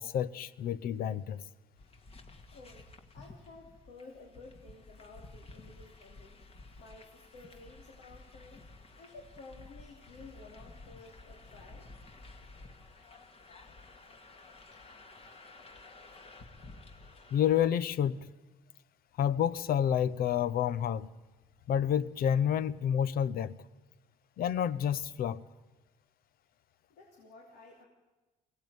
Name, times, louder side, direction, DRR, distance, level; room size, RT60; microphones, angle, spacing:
voice 1, 0.0-1.4 17.3-18.3 19.2-21.1 21.7-23.6 24.4-25.4, left 9 dB, 60° left, 0.8 m, -29 dB
sound 1, 1.8-17.7, left 2 dB, 35° left, 2.0 m, -53 dB
voice 2, 2.5-6.4 6.8-8.6 9.0-11.9 14.7-14.8 26.9-27.9, left 3 dB, 80° left, 3.4 m, -53 dB
22.5 x 17.5 x 9.4 m
cardioid pair, 110°, 17 cm